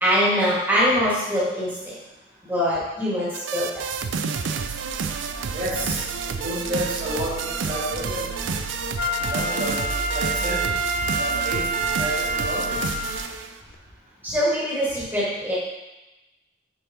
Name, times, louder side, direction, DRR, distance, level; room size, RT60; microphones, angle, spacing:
voice 1, 0.0-2.0 2.5-3.8 14.2-15.6, equal, 10° right, -8 dB, 2.1 m, -23 dB
sound 1, 3.3-13.5, right 5 dB, 80° right, 0.4 m, -29 dB
voice 2, 5.5-8.5 9.3-9.8 10.1-10.8 11.2-11.7 12.0-12.8, right 1 dB, 45° right, -7 dB, 1.8 m, -30 dB
Wind instrument woodwind instrument, 9.0-13.2 13.7-13.8, right 2 dB, 85° left, 0.6 m, -27 dB
6.5 x 4.9 x 3.8 m, 1.0 s
head